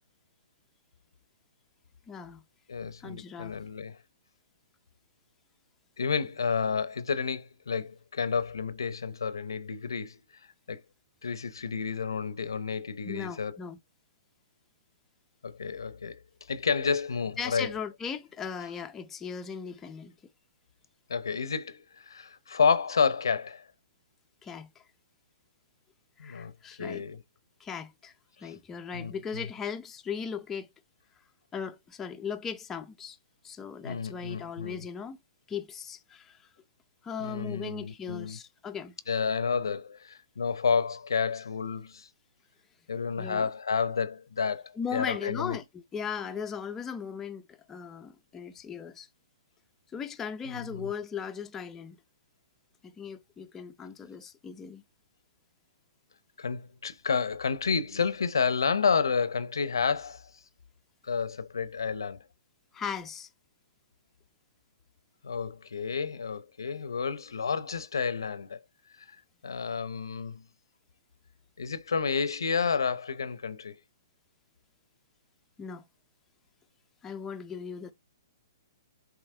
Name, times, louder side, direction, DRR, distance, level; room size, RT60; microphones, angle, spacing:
voice 1, 2.1-2.4 3.0-3.5 13.0-13.8 17.4-20.1 24.4-24.8 26.2-27.0 27.6-30.7 31.5-33.2 33.4-35.2 35.5-36.4 37.0-38.9 43.2-43.5 44.8-49.1 49.9-52.0 52.8-54.8 62.7-63.3 75.6-75.8 77.0-77.9, left 6 dB, 15° left, 0.6 m, -38 dB
voice 2, 2.7-4.0 6.0-10.2 10.7-10.8 11.2-13.6 15.4-16.2 16.5-17.7 21.1-23.6 26.2-26.5 26.8-27.2 28.4-28.5 28.9-29.4 33.8-34.8 37.2-38.4 39.1-42.1 42.9-45.6 50.5-50.9 56.4-60.3 61.0-62.2 65.2-68.6 69.4-70.4 71.6-73.7, left 5 dB, 90° left, 0.8 m, -30 dB
7.7 x 3.0 x 4.3 m
hypercardioid pair, 140°, 2 cm